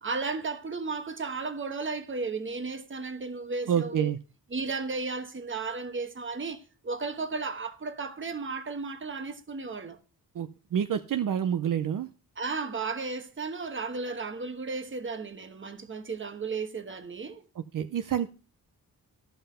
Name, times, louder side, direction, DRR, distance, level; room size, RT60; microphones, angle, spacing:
voice 1, 0.0-4.1 4.5-10.0 12.4-17.5, right 4 dB, 35° right, 1.2 m, -34 dB
voice 2, 3.7-4.2 10.3-12.1 17.7-18.3, right 9 dB, 65° right, 0.6 m, -28 dB
13.5 x 5.6 x 5.5 m
wide cardioid pair, 165°, 35 cm